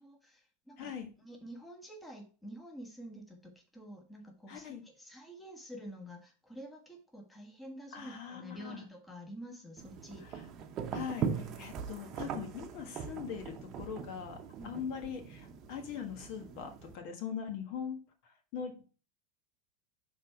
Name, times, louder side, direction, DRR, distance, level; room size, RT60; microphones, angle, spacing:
voice 1, 0.0-10.3 14.6-14.7, equal, 5° left, 2 dB, 1.4 m, -48 dB
voice 2, 0.8-1.1 4.5-4.8 7.9-8.8 10.9-14.4 14.6-18.0 18.5-18.8, left 7 dB, 60° left, 5 dB, 1.4 m, -41 dB
sound 1, 9.8-16.9, right 7 dB, 40° right, 0.8 m, -40 dB
6.6 x 3.5 x 4.4 m, 0.36 s
hypercardioid pair, 115°, 0 cm